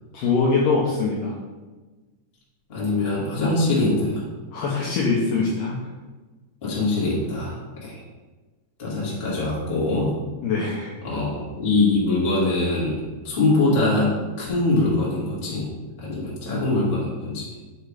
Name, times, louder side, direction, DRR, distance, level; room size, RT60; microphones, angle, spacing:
voice 1, 0.1-1.4 4.5-5.9 10.4-11.0, left 4 dB, 85° left, -4 dB, 1.9 m, -23 dB
voice 2, 2.7-4.2 6.6-7.9 8.8-10.1 11.0-13.0 13.2-14.1 14.4-15.7 16.0-17.4, left 2 dB, 35° left, -7 dB, 0.9 m, -23 dB
7.1 x 2.8 x 4.8 m, 1.3 s
omnidirectional pair, 4.5 m